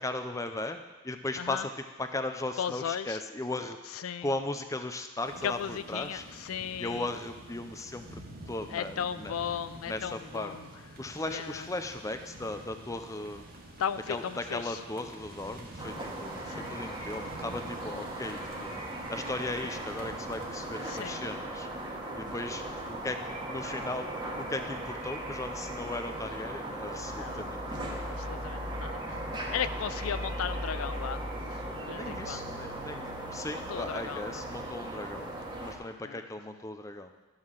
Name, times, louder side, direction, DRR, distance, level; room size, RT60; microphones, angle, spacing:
voice 1, 0.0-1.7 2.0-3.8 4.0-6.2 6.8-9.3 9.9-10.5 11.0-13.4 14.1-18.7 19.1-21.7 22.2-28.2 31.9-35.3 35.6-37.1, left 2 dB, 15° left, 7 dB, 0.5 m, -37 dB
voice 2, 2.6-3.2 3.9-4.3 5.4-7.1 8.7-10.7 11.3-11.7 13.8-14.8 16.5-16.7 20.8-21.2 27.1-27.4 28.1-31.2 31.7-32.6 33.5-34.5 36.0-36.2, left 8 dB, 85° left, 13 dB, 0.4 m, -36 dB
sound 1, 5.2-21.0, right 1 dB, 45° right, 1.5 m, -48 dB
sound 2, 15.8-35.7, right 1 dB, 20° right, 1.4 m, -38 dB
12.5 x 5.7 x 6.4 m, 1.2 s
head